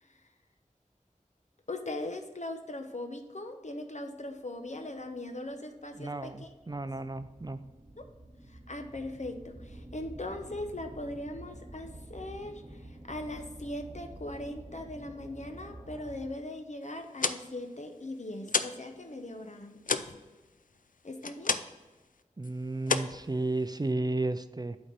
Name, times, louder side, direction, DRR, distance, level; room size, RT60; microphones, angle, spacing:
voice 1, 1.7-6.5 8.0-8.1 8.5-20.0 21.0-21.6, left 1 dB, 60° left, 5 dB, 0.9 m, -40 dB
sound 1, 5.1-5.2 5.8-16.5, right 1 dB, 45° right, 1.1 m, -49 dB
voice 2, 6.0-7.6 22.4-24.8, right 2 dB, 30° right, 11 dB, 0.4 m, -33 dB
sound 2, 17.0-18.9 19.2-21.9 22.2-22.5 22.8-23.9, left 5 dB, 80° left, 0.4 m, -32 dB
8.4 x 4.2 x 5.2 m, 1.2 s
wide cardioid pair, 45°, 14 cm